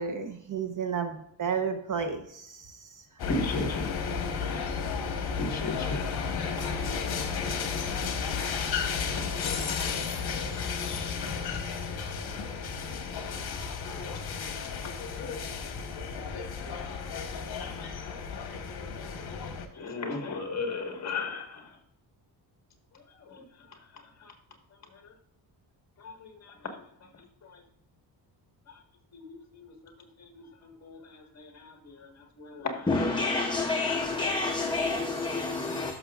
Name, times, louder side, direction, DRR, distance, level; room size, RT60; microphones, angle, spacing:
voice 1, 0.0-3.0, right 6 dB, 45° right, 0.9 m, -32 dB
sound 1, 3.2-19.7, left 6 dB, 55° left, 1.3 m, -33 dB
voice 2, 3.3-3.9 5.3-6.2 9.1-9.5 14.7-14.9 18.0-18.2 19.2-19.3 19.7-21.7 23.3-23.4 24.2-24.3 24.9-25.1 26.0-26.8 27.5-27.6 29.1-29.7 30.2-32.1 32.4-33.2, left 3 dB, 35° left, 1.6 m, -36 dB
voice 3, 32.9-35.9, left 3 dB, 10° left, 0.7 m, -28 dB
13.0 x 6.2 x 2.4 m
wide cardioid pair, 155°, 44 cm